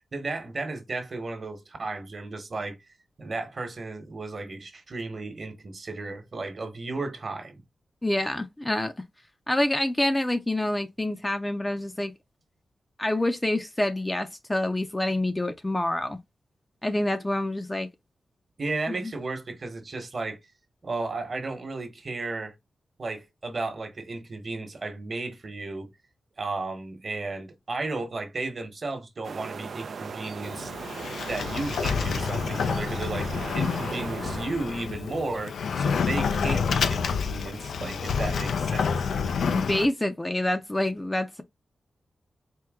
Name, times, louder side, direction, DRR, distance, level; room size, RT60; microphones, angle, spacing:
voice 1, 0.0-2.8 3.2-7.6 18.6-20.4 20.8-22.6 23.0-25.9 26.4-30.7 31.3-39.0, right 3 dB, 45° right, 1.1 m, -34 dB
voice 2, 8.0-8.9 9.5-12.1 13.0-16.2 16.8-17.9 18.9-19.1 39.5-41.4, left 1 dB, 15° left, 0.5 m, -27 dB
sound 1, 29.2-34.5, right 5 dB, 70° right, 0.4 m, -38 dB
Sliding door, 30.4-39.9, left 6 dB, 85° left, 0.4 m, -28 dB
4.5 x 2.1 x 3.5 m
wide cardioid pair, 95°, 0 cm